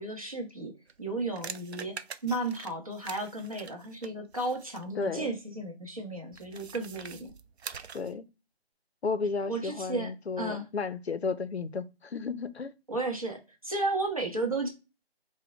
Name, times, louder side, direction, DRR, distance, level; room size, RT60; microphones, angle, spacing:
voice 1, 0.0-7.3 9.5-10.1 10.4-10.6 12.9-14.7, right 2 dB, 35° right, 0.9 m, -34 dB
sound 1, 0.9-4.9 6.3-8.2, right 6 dB, 80° right, 0.5 m, -44 dB
voice 2, 5.0-5.4 7.9-8.2 9.0-12.7, left 4 dB, 75° left, 0.6 m, -33 dB
3.5 x 2.2 x 3.8 m
figure-of-eight pair, 170°, 32 cm